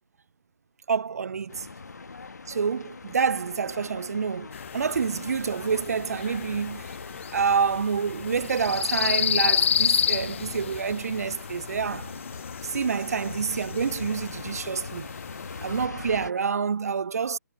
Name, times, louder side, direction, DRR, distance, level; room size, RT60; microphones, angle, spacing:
voice 1, 0.9-1.7 2.5-4.5 4.7-6.9 7.3-12.1 12.6-15.1 15.6-17.4, right 6 dB, 60° right, 0.5 m, -27 dB
sound 1, 1.5-16.3, left 4 dB, 70° left, 1.6 m, -42 dB
sound 2, 4.5-15.9, left 8 dB, 45° left, 0.6 m, -31 dB
figure-of-eight pair, 140°, 9 cm